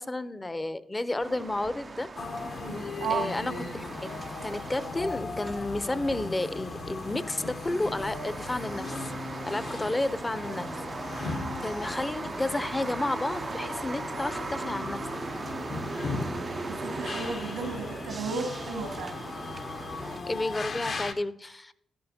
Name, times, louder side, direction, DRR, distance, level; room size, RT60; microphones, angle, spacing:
voice 1, 0.0-2.1 3.1-8.9 9.4-10.7 11.6-15.0 15.4-15.6 20.3-21.7, left 2 dB, 25° left, 15 dB, 0.6 m, -31 dB
sound 1, 1.2-20.2, right 4 dB, 40° right, 0.4 m, -39 dB
sound 2, 2.2-21.1, left 3 dB, 60° left, 0.9 m, -38 dB
voice 2, 3.0-3.6 16.7-19.3, right 5 dB, 90° right, 3 dB, 1.9 m, -34 dB
12.0 x 11.0 x 2.8 m, 0.73 s
supercardioid pair, 50°, 0 cm